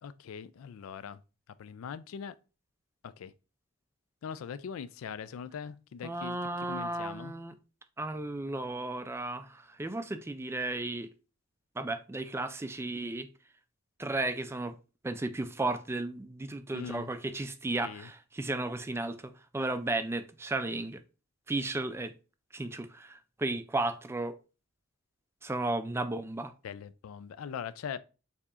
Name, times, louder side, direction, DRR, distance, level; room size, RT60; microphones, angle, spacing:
voice 1, 0.0-1.2 1.6-2.3 3.0-3.3 4.2-6.4 6.7-7.3 16.7-17.1 17.8-18.1 26.6-28.0, left 7 dB, 90° left, 0.3 m, -41 dB
voice 2, 6.0-7.6 8.0-11.1 11.8-13.3 14.0-14.8 15.0-21.0 21.5-22.1 22.5-24.4 25.4-26.5, right 2 dB, 10° right, 0.3 m, -34 dB
6.8 x 2.8 x 2.4 m
head